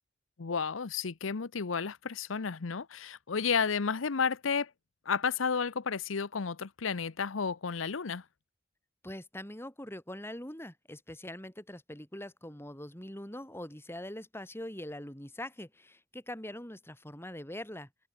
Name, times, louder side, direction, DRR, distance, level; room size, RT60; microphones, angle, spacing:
voice 1, 0.4-4.7 5.1-8.2, left 5 dB, 85° left, 0.8 m, -32 dB
voice 2, 9.0-17.9, left 1 dB, 10° left, 5.1 m, -43 dB
head